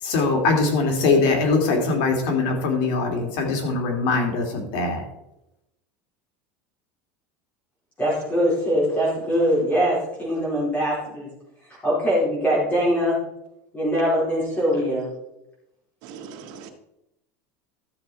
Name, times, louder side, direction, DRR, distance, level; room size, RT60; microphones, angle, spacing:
voice 1, 0.0-5.1, left 3 dB, 65° left, 3 dB, 2.8 m, -22 dB
voice 2, 8.0-11.3 11.8-13.2 13.7-15.1, equal, 20° left, -6 dB, 4.5 m, -22 dB
voice 3, 16.1-16.7, right 6 dB, 60° right, 5 dB, 1.7 m, -40 dB
12.5 x 7.2 x 4.3 m, 0.87 s
supercardioid pair, 135°, 7 cm